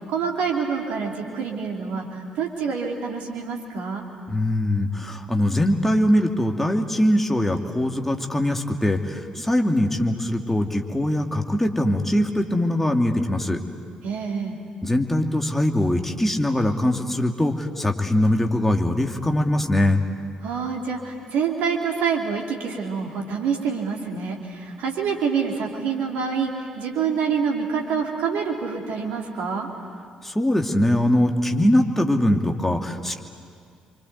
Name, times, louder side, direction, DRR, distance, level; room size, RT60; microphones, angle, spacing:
voice 1, 0.1-4.0 14.0-14.6 20.4-26.5 26.8-29.7, right 6 dB, 60° right, 0 dB, 2.9 m, -26 dB
voice 2, 4.3-13.6 14.8-20.0 30.2-33.2, left 1 dB, 10° left, 2 dB, 2.7 m, -22 dB
28.5 x 25.0 x 8.2 m, 2.3 s
figure-of-eight pair, 45°, 3 cm